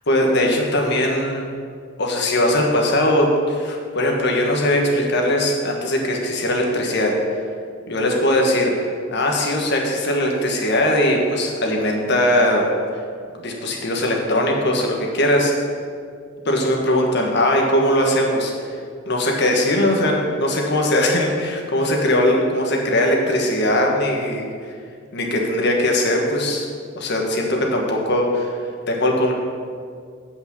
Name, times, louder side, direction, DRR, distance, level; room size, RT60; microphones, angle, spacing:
voice 1, 0.1-1.5 2.0-7.1 7.9-12.6 13.4-15.5 16.4-18.5 19.1-24.4 25.1-26.7 26.9-28.6 28.9-29.3, left 1 dB, 60° left, 0 dB, 1.5 m, -20 dB
8.3 x 5.4 x 7.0 m, 2.2 s
head